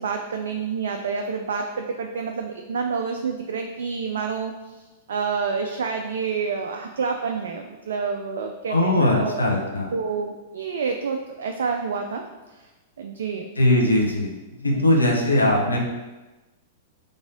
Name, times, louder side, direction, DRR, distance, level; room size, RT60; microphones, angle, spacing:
voice 1, 0.0-4.8 5.1-9.4 9.9-12.2 12.5-12.6 13.0-13.5 14.6-14.9, right 5 dB, 70° right, 4 dB, 0.3 m, -28 dB
voice 2, 8.7-9.9 13.6-14.3 14.6-15.8, left 1 dB, 90° left, -1 dB, 0.9 m, -20 dB
3.9 x 3.4 x 3.8 m, 1.1 s
figure-of-eight pair, 100°, 0 cm